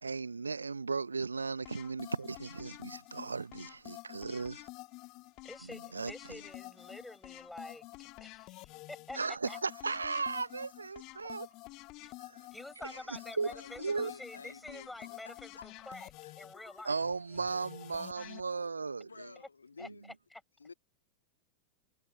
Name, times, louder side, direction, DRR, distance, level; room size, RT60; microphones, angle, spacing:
voice 1, 0.0-4.7 5.9-6.1 9.2-11.5 12.2-12.5 13.4-13.5 13.8-14.1 16.8-19.1, right 4 dB, 75° right, 0.9 m, -36 dB
sound 1, 1.6-18.4, left 23 dB, 40° left, 1.8 m, -50 dB
voice 2, 5.4-9.6 12.0-12.1 12.5-16.1 16.4-17.0 19.8-19.9 20.3-20.4, left 2 dB, 5° left, 6.8 m, -48 dB
voice 3, 13.5-16.8 17.9-18.1 18.5-20.1 20.6-20.7, left 4 dB, 75° left, 2.0 m, -53 dB
figure-of-eight pair, 90°, 0 cm